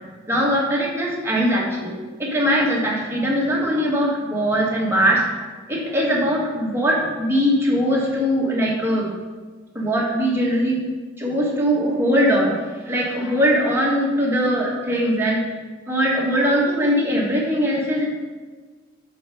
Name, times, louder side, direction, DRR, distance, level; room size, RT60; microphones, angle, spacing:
voice 1, 0.3-1.9 2.2-5.2 5.7-9.1 9.7-10.8 11.2-12.5 12.9-15.4 15.9-18.0, equal, 10° right, -4 dB, 1.2 m, -21 dB
5.6 x 4.2 x 5.2 m, 1.4 s
head